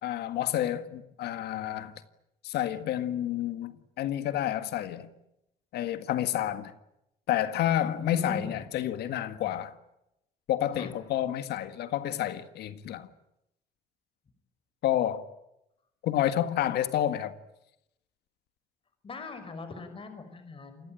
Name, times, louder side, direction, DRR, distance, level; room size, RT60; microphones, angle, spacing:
voice 1, 0.0-1.9 2.4-5.1 5.7-6.7 7.3-9.7 10.5-13.1 14.8-15.2 16.0-17.3, left 11 dB, 75° left, 1.8 m, -29 dB
voice 2, 8.0-8.6 10.8-10.9 19.0-20.9, left 3 dB, 30° left, 5.5 m, -40 dB
28.0 x 20.5 x 9.1 m
cardioid pair, 110°, 17 cm